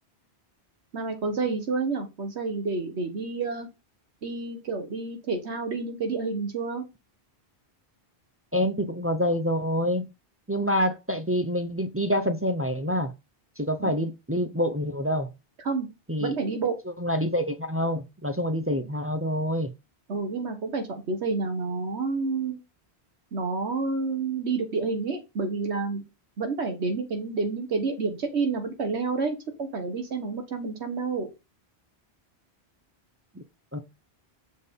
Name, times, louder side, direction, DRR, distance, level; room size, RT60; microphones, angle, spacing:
voice 1, 0.9-3.7 4.2-6.8 14.0-14.1 15.6-15.9 16.2-16.8 20.1-22.6 23.3-26.0 26.4-31.3, right 4 dB, 80° right, 1.4 m, -29 dB
voice 2, 8.5-10.1 10.5-13.1 13.6-15.3 16.1-16.3 17.0-19.7 33.4-33.5 33.7-33.8, equal, 15° right, 0.5 m, -27 dB
7.1 x 4.2 x 5.2 m
omnidirectional pair, 1.1 m